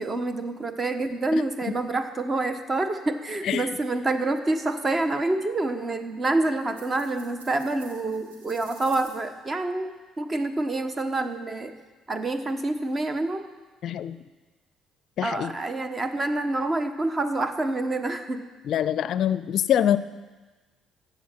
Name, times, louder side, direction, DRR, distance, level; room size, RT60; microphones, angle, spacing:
voice 1, 0.0-11.8 12.1-13.4 15.2-18.5, right 2 dB, 30° right, 9 dB, 1.2 m, -27 dB
sound 1, 6.7-9.2, right 3 dB, 80° right, 1.6 m, -49 dB
voice 2, 13.8-14.2 15.2-15.5 18.7-20.0, left 10 dB, 60° left, 15 dB, 0.4 m, -24 dB
14.5 x 8.2 x 6.0 m, 1.3 s
hypercardioid pair, 50°, 0 cm